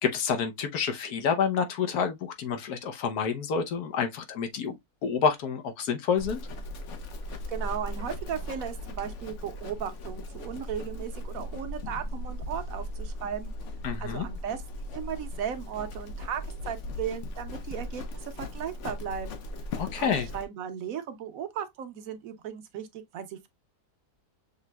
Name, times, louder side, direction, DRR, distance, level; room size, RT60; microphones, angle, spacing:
voice 1, 0.0-4.8 5.0-6.4 13.8-14.3 19.8-20.3, left 6 dB, 75° left, 1.4 m, -28 dB
Livestock farm animals working animals, 6.2-20.5, left 1 dB, 55° left, 1.0 m, -38 dB
voice 2, 7.3-13.5 14.0-19.4 19.9-23.5, right 8 dB, 65° right, 1.2 m, -36 dB
6.5 x 3.0 x 2.2 m
omnidirectional pair, 1.7 m